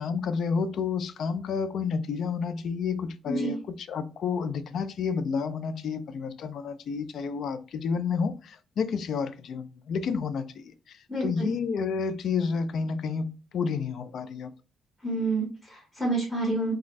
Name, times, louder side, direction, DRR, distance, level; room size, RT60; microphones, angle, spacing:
voice 1, 0.0-3.6 3.9-14.5, left 5 dB, 65° left, 0.3 m, -30 dB
voice 2, 3.3-3.6 11.1-11.5 15.0-16.7, right 2 dB, 10° left, 1.3 m, -29 dB
2.4 x 2.3 x 3.1 m
cardioid pair, 95°, 0 cm